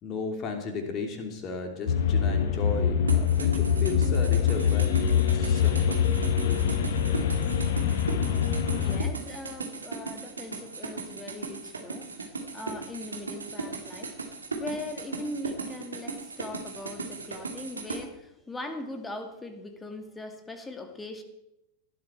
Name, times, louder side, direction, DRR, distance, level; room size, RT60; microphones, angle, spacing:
voice 1, 0.0-6.1 6.4-6.8, left 4 dB, 35° left, 5 dB, 3.1 m, -35 dB
sound 1, 1.9-9.0, left 8 dB, 55° left, 1.3 m, -24 dB
sound 2, 3.1-18.0, right 4 dB, 75° right, 2.5 m, -37 dB
voice 2, 8.7-12.1 12.5-14.2 14.5-21.2, left 2 dB, 10° left, 6 dB, 2.3 m, -40 dB
18.5 x 12.5 x 4.5 m, 0.86 s
figure-of-eight pair, 90°, 0 cm